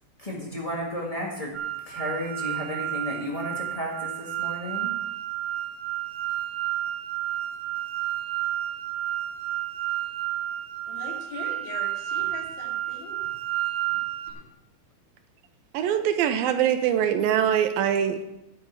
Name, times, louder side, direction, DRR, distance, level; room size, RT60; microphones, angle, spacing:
voice 1, 0.2-1.5 1.8-5.0, equal, 55° left, -3 dB, 0.4 m, -33 dB
sound 1, 1.5-14.3, right 13 dB, 60° right, 2.0 m, -31 dB
voice 2, 10.9-13.3 13.8-14.0, left 4 dB, 75° left, -1 dB, 4.3 m, -41 dB
voice 3, 15.7-18.2, right 9 dB, 80° right, 8 dB, 2.4 m, -23 dB
11.0 x 5.8 x 8.1 m, 0.88 s
omnidirectional pair, 4.2 m